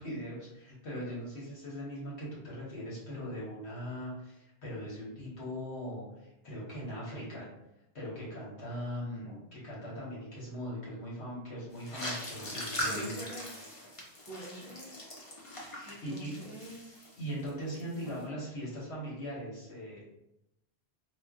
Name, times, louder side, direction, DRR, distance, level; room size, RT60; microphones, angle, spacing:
voice 1, 0.0-7.5 8.0-13.2 15.6-16.3 17.2-20.0, equal, 80° left, -6 dB, 1.7 m, -40 dB
sound 1, 11.7-17.5 17.7-18.1, left 1 dB, 35° left, 0.8 m, -40 dB
voice 2, 12.8-13.5 14.2-14.9 15.8-17.0 18.0-18.4, right 1 dB, 15° left, -7 dB, 1.2 m, -46 dB
4.4 x 2.8 x 2.4 m, 0.87 s
omnidirectional pair, 1.1 m